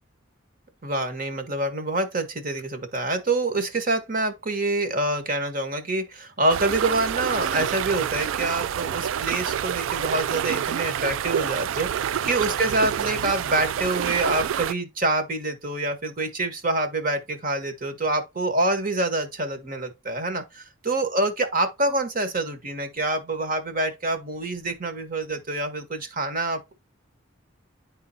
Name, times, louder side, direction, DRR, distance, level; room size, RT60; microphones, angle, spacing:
voice 1, 0.8-26.7, right 2 dB, 45° right, 1.6 m, -26 dB
sound 1, 6.5-14.7, right 9 dB, 80° right, 0.3 m, -28 dB
10.5 x 3.8 x 2.9 m
head